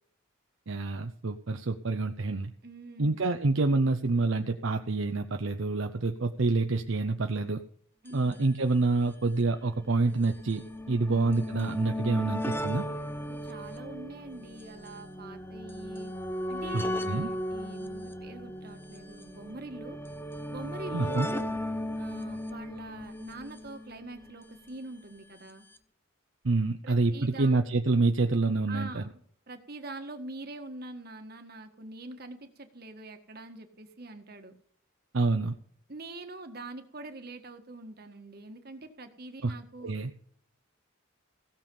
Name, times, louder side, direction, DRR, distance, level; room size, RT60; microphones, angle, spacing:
voice 1, 0.7-2.5 3.0-7.6 8.1-12.9 16.7-17.3 20.9-21.3 26.4-29.0 35.1-35.5 39.4-39.5 39.8-40.1, right 3 dB, 65° right, 6 dB, 0.7 m, -27 dB
voice 2, 2.6-3.3 8.0-8.5 11.0-11.2 13.3-16.1 16.5-20.0 20.5-21.6 22.0-25.6 26.8-27.5 28.7-29.2 29.5-34.5 35.9-40.0, right 2 dB, 50° right, 6 dB, 1.6 m, -44 dB
sound 1, 8.1-8.2 8.3-8.4 9.3-24.5 25.5-25.6 25.8-25.9, equal, 10° left, 0.7 m, -37 dB
16.5 x 7.0 x 5.5 m, 0.63 s
head